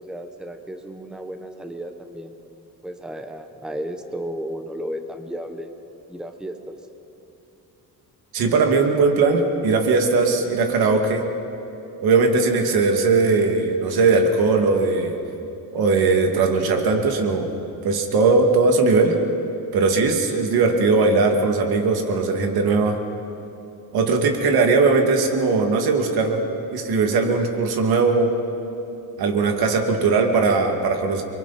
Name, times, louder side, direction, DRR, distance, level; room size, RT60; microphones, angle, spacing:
voice 1, 0.0-2.3 2.8-5.7 6.1-6.8, equal, ahead, 6 dB, 0.9 m, -33 dB
voice 2, 8.3-11.3 12.0-15.1 15.7-17.5 17.8-19.2 19.7-23.0 23.9-26.4 26.7-28.3 29.2-31.2, right 4 dB, 80° right, 3 dB, 2.4 m, -19 dB
30.0 x 23.0 x 4.3 m, 2.9 s
cardioid pair, 155°, 36 cm